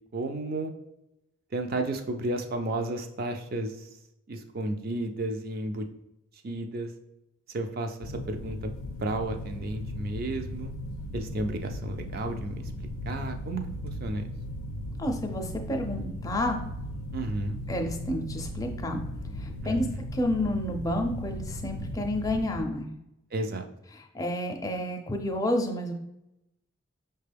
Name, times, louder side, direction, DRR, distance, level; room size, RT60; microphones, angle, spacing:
voice 1, 0.1-0.7 1.5-3.9 4.3-5.9 6.4-6.9 7.5-8.7 9.0-10.7 11.1-14.3 17.1-17.6 19.6-19.7 23.3-23.7, right 2 dB, 45° right, 6 dB, 0.4 m, -32 dB
sound 1, 8.0-22.6, left 1 dB, 90° left, 0.4 m, -37 dB
voice 2, 15.0-16.6 17.7-19.0 19.4-19.9 20.1-22.9 23.9-25.9, left 1 dB, 15° left, 2 dB, 0.4 m, -30 dB
5.7 x 2.2 x 3.3 m, 0.88 s
head